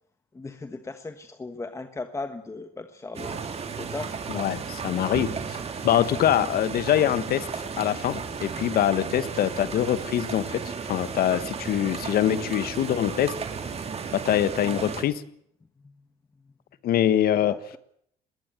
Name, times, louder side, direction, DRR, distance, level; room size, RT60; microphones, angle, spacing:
voice 1, 0.3-3.4 3.8-4.2 14.6-14.9 15.8-16.0 17.4-17.8, left 3 dB, 15° left, 9 dB, 1.3 m, -37 dB
sound 1, 3.1-15.0, right 6 dB, 35° right, 2.9 m, -34 dB
voice 2, 4.3-5.3 5.8-7.5 7.8-10.6 10.9-13.3 14.1-15.1 16.8-17.5, left 11 dB, 65° left, 14 dB, 1.5 m, -24 dB
21.0 x 16.5 x 9.2 m, 0.69 s
cardioid pair, 110°, 17 cm